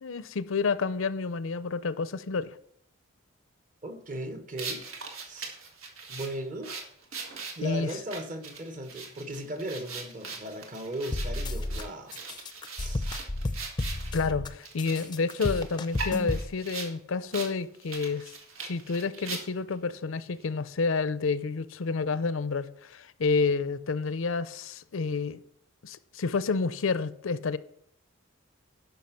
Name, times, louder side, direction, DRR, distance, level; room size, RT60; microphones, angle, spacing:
voice 1, 0.0-2.6 7.6-7.9 14.1-18.3 18.6-25.4 25.8-27.6, left 4 dB, 70° left, 0.5 m, -29 dB
voice 2, 3.8-4.8 5.3-5.6 6.1-6.7 7.6-12.2 12.8-13.1, right 1 dB, 40° right, 1.1 m, -37 dB
sound 1, 4.6-14.1 14.6-16.9 17.3-17.5 17.8-19.7, right 4 dB, 80° right, 1.9 m, -40 dB
sound 2, 11.1-11.8 12.1-14.5 14.8-16.5, left 2 dB, 20° left, 0.5 m, -32 dB
11.5 x 5.8 x 5.9 m
head